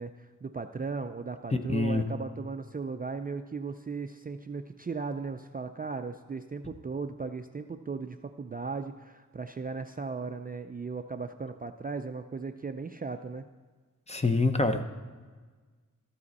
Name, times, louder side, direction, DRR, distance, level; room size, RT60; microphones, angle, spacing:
voice 1, 0.0-13.4, right 4 dB, 30° right, 7 dB, 0.3 m, -37 dB
voice 2, 1.5-2.0 14.1-14.8, left 3 dB, 20° left, 7 dB, 0.6 m, -26 dB
13.0 x 7.6 x 4.1 m, 1.4 s
wide cardioid pair, 130°, 32 cm